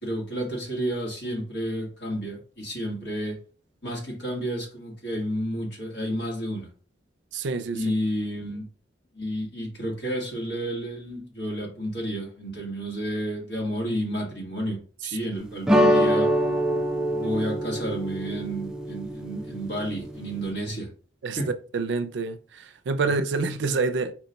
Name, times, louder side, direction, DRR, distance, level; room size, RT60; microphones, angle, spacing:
voice 1, 0.0-3.4 3.8-6.7 7.7-8.7 9.1-16.3 17.1-20.9 21.4-21.5, equal, 70° left, 1.6 m, -31 dB
voice 2, 7.3-7.8 21.2-21.4 21.7-24.1, right 4 dB, 75° right, 0.4 m, -27 dB
sound 1, 15.7-20.5, equal, 5° right, 0.3 m, -25 dB
4.5 x 2.2 x 3.9 m
head